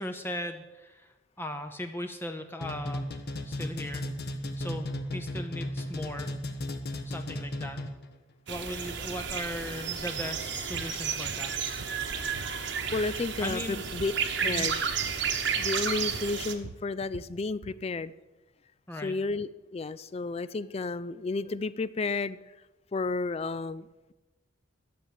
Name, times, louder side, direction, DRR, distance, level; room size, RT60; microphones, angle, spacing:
voice 1, 0.0-3.1 3.4-4.1 4.6-6.3 7.0-7.8 8.5-11.5 13.4-13.8 14.4-14.7 18.9-19.2, left 1 dB, 10° left, 6 dB, 0.7 m, -38 dB
sound 1, 2.6-8.1, left 1 dB, 50° left, 1.3 m, -35 dB
sound 2, 8.5-16.5, right 7 dB, 60° right, 1.1 m, -32 dB
sound 3, 10.2-10.4 10.7-10.9 11.3-12.1 12.4-14.2 14.5-14.7 15.0-15.2 15.6-15.8 16.1-17.8, right 4 dB, 80° right, 0.6 m, -45 dB
voice 2, 12.6-14.1 14.4-14.8 15.5-18.1 19.0-22.4 22.9-24.1, left 3 dB, 30° left, 16 dB, 0.3 m, -32 dB
12.5 x 7.2 x 9.1 m, 1.1 s
head